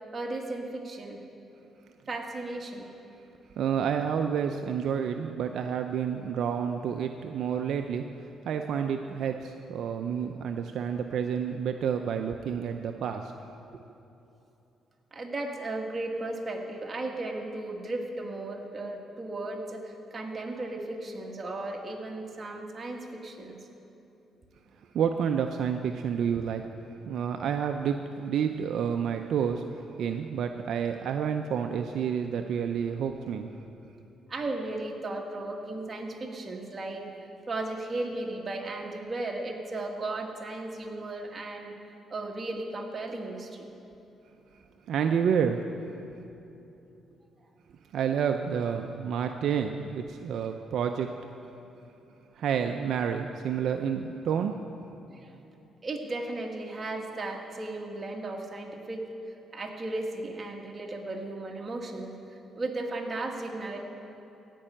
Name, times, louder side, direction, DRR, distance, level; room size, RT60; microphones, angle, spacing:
voice 1, 0.1-1.2 2.1-2.9 15.1-23.6 34.3-37.1 37.5-41.7 42.1-43.7 55.1-55.3 55.8-62.2 62.6-63.8, right 2 dB, 30° right, 0 dB, 1.8 m, -35 dB
voice 2, 3.6-13.3 13.7-13.8 24.9-26.7 27.0-29.6 30.0-33.5 44.9-45.6 47.9-51.1 52.4-54.6, right 7 dB, 70° right, 5 dB, 0.5 m, -29 dB
16.0 x 5.5 x 8.7 m, 2.9 s
cardioid pair, 90°, 0 cm